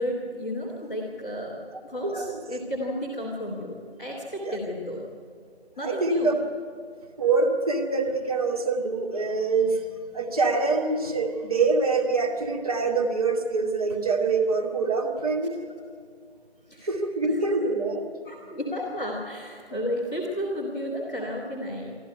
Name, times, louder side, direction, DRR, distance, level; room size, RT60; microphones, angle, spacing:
voice 1, 0.0-1.6 1.8-5.0 5.8-6.3 16.7-16.9 17.5-17.6 18.2-21.9, equal, 5° left, -8 dB, 1.4 m, -32 dB
voice 2, 2.0-2.4 4.4-4.6 5.8-6.4 7.2-9.8 10.1-15.6 16.8-18.1, right 3 dB, 35° right, 1 dB, 2.3 m, -25 dB
24.5 x 14.0 x 9.6 m, 2.2 s
figure-of-eight pair, 160°, 33 cm